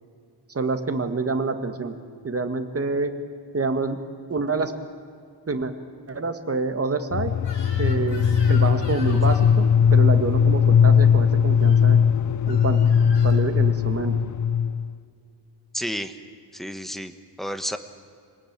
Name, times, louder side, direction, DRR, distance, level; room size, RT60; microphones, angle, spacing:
voice 1, 0.5-1.9 2.2-3.1 3.5-4.0 4.3-4.7 5.5-5.7 6.1-7.3 7.8-12.0 12.5-12.8 13.2-14.2, right 3 dB, 35° right, 7 dB, 1.8 m, -27 dB
sound 1, 7.1-14.9, left 7 dB, 45° left, 0.6 m, -19 dB
Crying sobbing / Screech, 7.4-9.6 11.5-11.8 12.5-13.5, left 3 dB, 90° left, 4.4 m, -42 dB
voice 2, 15.7-16.2 16.5-17.1 17.4-17.8, equal, ahead, 9 dB, 1.2 m, -30 dB
26.5 x 19.5 x 8.9 m, 2.3 s
wide cardioid pair, 150°, 42 cm